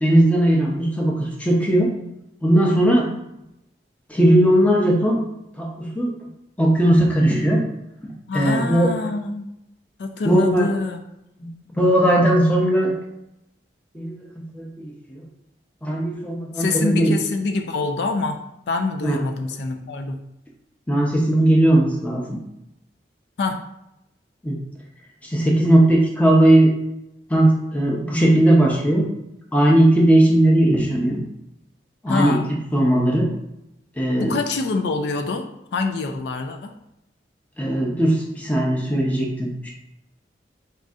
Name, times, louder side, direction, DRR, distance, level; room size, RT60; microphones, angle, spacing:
voice 1, 0.0-1.9 2.4-3.1 4.1-5.2 5.6-6.1 6.6-7.6 8.0-8.9 10.3-10.7 11.4-11.5 11.8-12.9 13.9-14.2 14.5-15.2 15.8-17.1 19.0-19.2 20.9-22.4 24.4-24.6 25.2-26.7 27.3-29.1 29.5-31.2 32.0-33.3 34.0-34.4 37.6-39.7, right 1 dB, 10° left, -2 dB, 0.6 m, -18 dB
voice 2, 8.3-9.5 10.0-11.0 16.5-18.4 18.7-20.2 23.4-23.6 32.1-32.5 34.2-36.7, left 3 dB, 65° left, 5 dB, 0.3 m, -25 dB
4.2 x 2.6 x 3.5 m, 0.84 s
head